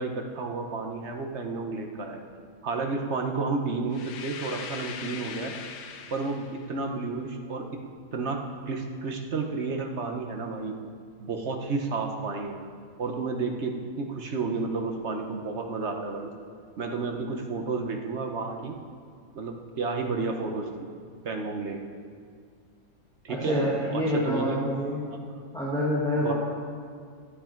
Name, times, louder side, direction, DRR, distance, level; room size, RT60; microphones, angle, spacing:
voice 1, 0.0-2.2 2.6-5.5 6.1-7.6 8.1-10.8 11.2-12.5 13.0-16.3 16.8-18.8 19.3-20.7 21.2-21.8 23.2-23.6 23.9-24.6 25.1-25.2 26.1-26.3, right 4 dB, 45° right, 4 dB, 1.1 m, -31 dB
sound 1, 3.9-6.7, left 6 dB, 70° left, 1.4 m, -40 dB
voice 2, 23.3-25.0 25.5-26.3, equal, ahead, -6 dB, 1.5 m, -27 dB
15.0 x 11.0 x 4.5 m, 2.1 s
omnidirectional pair, 1.9 m